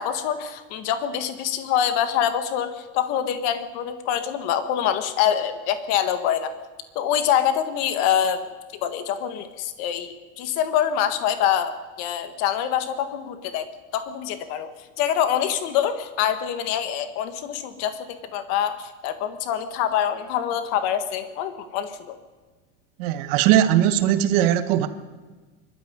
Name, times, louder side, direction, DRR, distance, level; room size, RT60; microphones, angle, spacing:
voice 1, 0.0-6.5 6.9-14.7 15.0-22.2, left 9 dB, 40° left, 1.7 m, -25 dB
voice 2, 23.0-24.9, right 11 dB, 50° right, 1.5 m, -19 dB
24.0 x 13.0 x 9.5 m
supercardioid pair, 170°, 38 cm